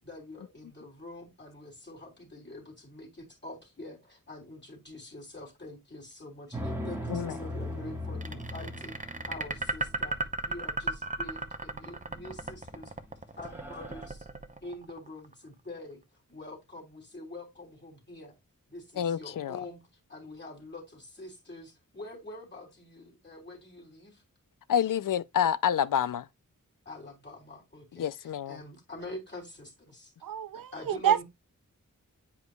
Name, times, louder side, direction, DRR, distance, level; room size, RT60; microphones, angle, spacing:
voice 1, 0.0-10.2 10.4-12.9 13.4-14.3 14.6-16.0 16.3-18.4 18.7-19.8 20.1-24.2 26.8-30.1 30.5-31.2, left 2 dB, 35° left, 3.2 m, -45 dB
sound 1, 6.5-10.4 12.3-12.7 13.1-13.2 13.5-14.1, equal, 5° right, 1.4 m, -39 dB
sound 2, 8.2-15.3, right 2 dB, 25° right, 0.7 m, -35 dB
voice 2, 19.0-19.6 24.7-26.3 28.0-28.6, left 9 dB, 75° left, 0.5 m, -28 dB
voice 3, 30.2-31.2, right 10 dB, 85° right, 0.5 m, -28 dB
8.2 x 4.9 x 2.3 m
wide cardioid pair, 75°, 33 cm